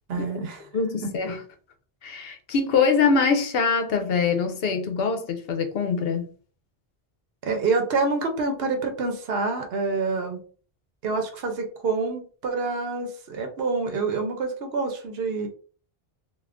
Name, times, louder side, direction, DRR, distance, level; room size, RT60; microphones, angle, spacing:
voice 1, 0.1-0.6 7.4-10.4 11.0-15.5, right 4 dB, 75° right, 0.9 m, -27 dB
voice 2, 0.7-1.4 2.0-6.3, left 5 dB, 70° left, 0.8 m, -23 dB
2.4 x 2.4 x 3.4 m
omnidirectional pair, 1.0 m